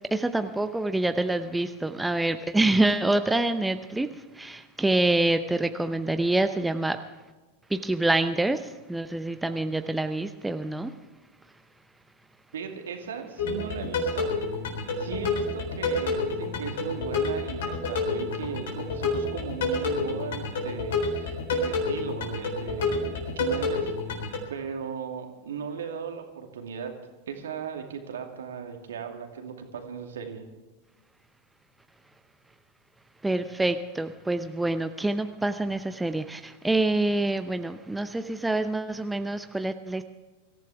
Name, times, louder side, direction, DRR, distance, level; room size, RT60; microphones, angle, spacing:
voice 1, 0.1-7.0 7.7-10.9 33.2-40.0, right 2 dB, 5° right, 9 dB, 0.7 m, -26 dB
voice 2, 12.5-14.3 15.0-26.9 27.3-30.4, right 6 dB, 65° right, 4 dB, 2.4 m, -37 dB
sound 1, 13.4-24.4, left 3 dB, 60° left, 4.0 m, -29 dB
24.5 x 15.0 x 3.5 m, 1.2 s
figure-of-eight pair, 90°, 0 cm